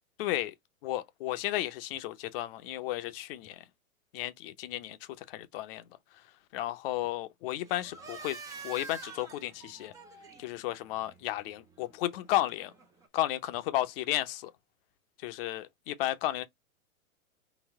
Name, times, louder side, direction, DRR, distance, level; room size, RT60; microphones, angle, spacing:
voice 1, 0.2-0.5 0.8-3.6 4.1-5.8 6.5-8.4 8.6-9.9 10.4-12.7 13.1-14.5 15.2-16.5, left 15 dB, 40° left, 0.7 m, -33 dB
sound 1, 7.6-13.1, right 3 dB, 10° right, 0.4 m, -48 dB
4.0 x 2.2 x 4.0 m
hypercardioid pair, 120°, 42 cm